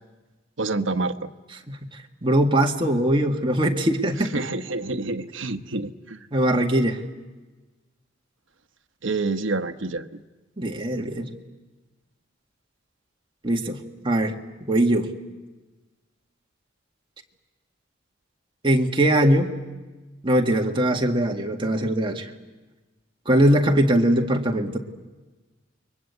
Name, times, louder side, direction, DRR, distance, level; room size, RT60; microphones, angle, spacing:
voice 1, 0.6-1.3 4.2-6.2 9.0-10.2, right 3 dB, 70° right, 8 dB, 1.1 m, -28 dB
voice 2, 2.2-4.3 6.3-7.0 10.6-11.4 13.4-14.3 14.7-15.1 18.6-19.5 20.2-22.3 23.3-24.8, right 1 dB, 25° right, 2 dB, 1.9 m, -21 dB
29.5 x 22.5 x 8.2 m, 1.2 s
head